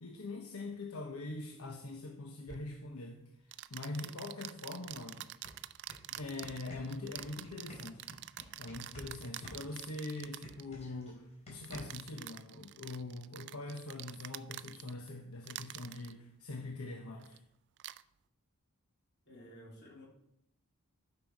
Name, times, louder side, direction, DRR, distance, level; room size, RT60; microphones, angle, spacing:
voice 1, 0.0-5.3 6.1-8.1 8.6-17.4, left 2 dB, 75° left, 2 dB, 1.0 m, -43 dB
sound 1, 2.5-2.6 3.5-10.7 11.6-15.1 15.4-16.1 17.2-17.4 17.8-18.0, right 14 dB, 55° right, 0.3 m, -47 dB
sound 2, 4.9-5.0 5.3-9.1 9.4-12.1, left 1 dB, 30° left, 4.0 m, -51 dB
voice 2, 19.2-20.1, equal, 55° left, -3 dB, 3.1 m, -53 dB
11.5 x 5.9 x 4.7 m, 0.78 s
head